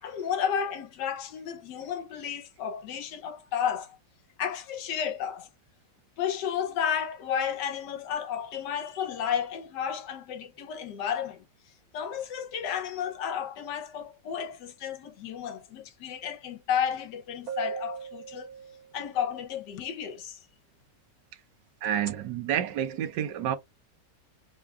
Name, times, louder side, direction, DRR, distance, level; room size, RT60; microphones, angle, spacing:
voice 1, 0.0-4.0 4.4-5.5 6.2-11.4 11.9-18.5 18.9-20.4, left 8 dB, 70° left, 1.3 m, -32 dB
sound 1, 16.9-17.0 17.5-19.2 21.8-22.1, right 7 dB, 55° right, 1.6 m, -38 dB
voice 2, 21.8-23.6, right 10 dB, 75° right, 1.3 m, -29 dB
3.6 x 2.3 x 3.4 m
omnidirectional pair, 2.0 m